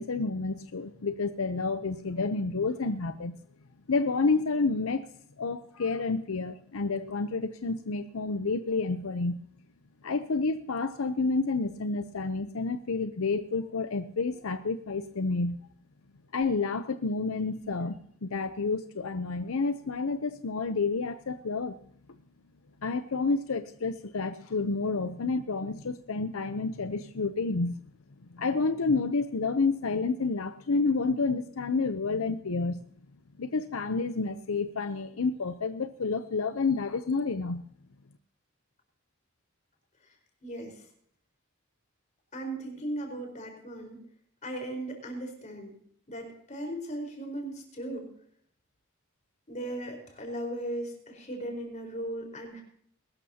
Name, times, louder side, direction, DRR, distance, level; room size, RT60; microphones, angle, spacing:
voice 1, 0.0-3.4 3.9-5.1 5.4-9.4 10.0-15.6 16.3-21.8 22.8-27.8 28.3-32.9 33.4-37.6, left 4 dB, 85° left, 10 dB, 0.7 m, -29 dB
voice 2, 40.4-40.9 42.3-44.1 44.4-45.8 46.1-48.1 49.5-52.6, right 1 dB, 35° left, 3 dB, 4.6 m, -37 dB
21.5 x 12.5 x 2.9 m, 0.64 s
head